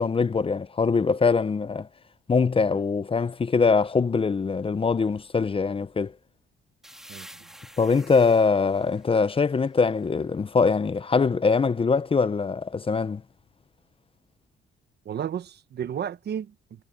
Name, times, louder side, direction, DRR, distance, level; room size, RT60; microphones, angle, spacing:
voice 1, 0.0-1.9 2.3-6.1 7.8-13.2, left 4 dB, 25° left, 0.7 m, -23 dB
sound 1, 6.8-10.4, equal, ahead, 2.4 m, -50 dB
voice 2, 7.1-7.5 15.0-16.8, right 9 dB, 55° right, 1.1 m, -33 dB
cardioid pair, 90°, 20 cm